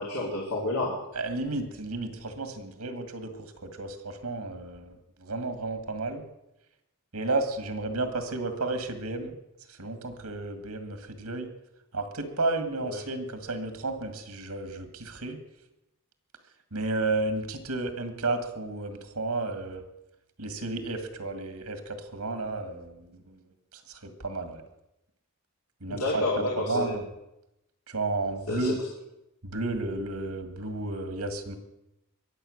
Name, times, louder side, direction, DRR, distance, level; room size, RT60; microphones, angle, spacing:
voice 1, 0.0-1.0 12.8-13.0 25.9-26.9 28.5-28.8, left 2 dB, 80° left, -2 dB, 2.6 m, -29 dB
voice 2, 1.2-3.3 3.6-5.0 5.2-6.2 7.1-9.3 9.8-11.5 11.9-15.4 16.7-19.8 20.4-23.4 23.9-24.6 25.8-26.2 26.6-27.0 27.9-28.8 29.4-31.6, right 2 dB, 85° right, 8 dB, 1.9 m, -32 dB
22.0 x 8.0 x 6.5 m, 0.90 s
head